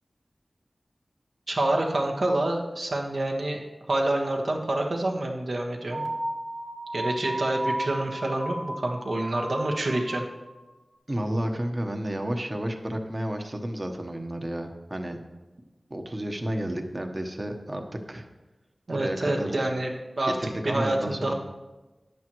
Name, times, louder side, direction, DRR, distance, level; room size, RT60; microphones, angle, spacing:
voice 1, 1.5-6.0 6.9-10.2 18.9-19.9 20.2-20.4 20.6-21.3, right 1 dB, 75° right, 1 dB, 1.4 m, -27 dB
sound 1, 5.9-10.5, right 1 dB, 55° right, 2.1 m, -34 dB
voice 2, 11.1-15.2 15.9-18.3 18.9-19.7 20.2-21.3, right 1 dB, 35° right, 5 dB, 1.1 m, -31 dB
14.0 x 9.8 x 3.1 m, 1.1 s
wide cardioid pair, 55°, 0 cm